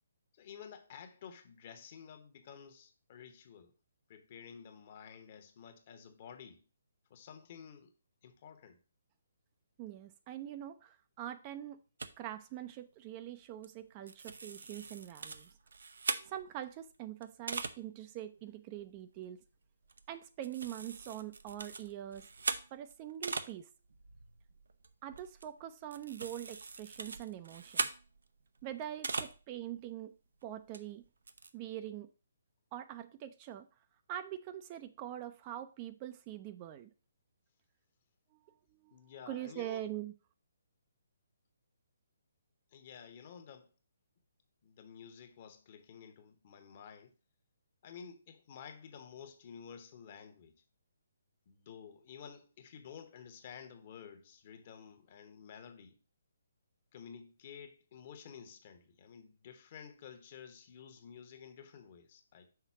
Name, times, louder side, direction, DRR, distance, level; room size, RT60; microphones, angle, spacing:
voice 1, 0.4-3.7 4.1-6.6 7.1-7.9 8.2-8.8 38.9-39.8 42.7-43.7 44.6-47.1 47.8-50.6 51.5-56.0 56.9-62.5, left 7 dB, 40° left, 1.0 m, -52 dB
voice 2, 9.8-11.8 12.2-15.5 16.3-19.4 20.1-22.3 22.7-23.7 25.0-27.9 28.6-30.1 30.4-31.1 31.5-32.1 32.7-33.7 34.1-36.9 38.7-38.9 39.3-40.1, right 12 dB, 30° right, 0.5 m, -43 dB
sound 1, 12.0-12.1 13.6-13.8 14.1-16.6 17.2-17.8 18.3-18.4 18.8-19.0 19.9-20.2 20.4-23.5 23.8-29.4 29.8-29.9 30.7-30.8 31.0-31.5, right 4 dB, 70° right, 0.6 m, -41 dB
5.9 x 4.0 x 5.7 m
figure-of-eight pair, 140°, 0 cm